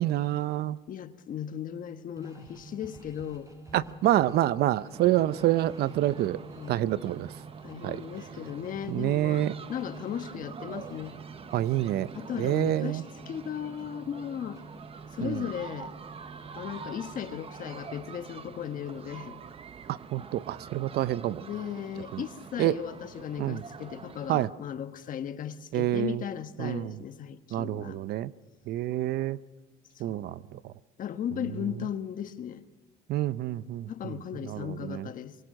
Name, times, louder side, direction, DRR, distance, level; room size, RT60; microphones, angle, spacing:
voice 1, 0.0-0.8 3.7-6.4 6.7-7.3 7.8-8.0 8.9-9.5 11.5-12.1 12.4-13.0 15.2-15.5 19.9-21.4 22.1-22.2 22.6-22.8 23.4-23.6 24.3-24.5 25.7-26.2 26.6-27.0 27.5-28.3 28.7-29.4 30.0-30.7 33.1-34.2 34.4-35.1, right 13 dB, 70° right, 0.7 m, -27 dB
voice 2, 0.9-3.5 6.5-6.8 7.6-11.2 12.1-14.6 15.1-15.9 16.5-19.4 21.3-28.0 29.9-30.3 31.0-32.6 33.9-35.4, left 9 dB, 55° left, 1.2 m, -36 dB
sound 1, 2.2-18.3, right 3 dB, 20° right, 5.9 m, -49 dB
sound 2, 4.9-24.5, right 6 dB, 35° right, 0.9 m, -46 dB
23.5 x 23.0 x 6.5 m
cardioid pair, 110°, 17 cm